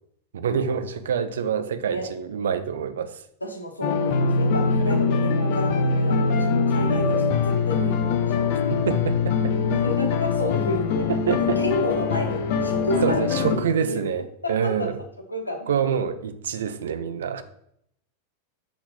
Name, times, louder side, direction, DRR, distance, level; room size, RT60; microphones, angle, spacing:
voice 1, 0.3-3.2 6.7-7.2 8.7-9.5 11.1-11.6 13.0-14.9 15.7-17.4, right 7 dB, 65° right, 10 dB, 0.5 m, -26 dB
voice 2, 3.4-8.5 9.6-11.1 11.4-13.6 13.9-14.0 14.4-14.9 15.3-15.7, left 1 dB, 80° left, 4 dB, 1.0 m, -30 dB
sound 1, 3.8-13.6, left 5 dB, 50° left, 0.6 m, -23 dB
6.1 x 3.9 x 4.1 m, 0.72 s
figure-of-eight pair, 90°, 0 cm